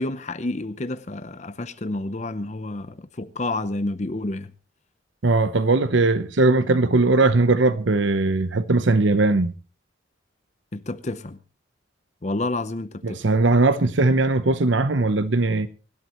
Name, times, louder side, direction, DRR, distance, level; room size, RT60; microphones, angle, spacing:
voice 1, 0.0-4.5 10.7-11.4 12.2-13.2, left 2 dB, 35° left, 0.7 m, -29 dB
voice 2, 5.2-9.5 13.0-15.7, right 3 dB, 75° right, 0.9 m, -19 dB
25.0 x 12.5 x 3.1 m
head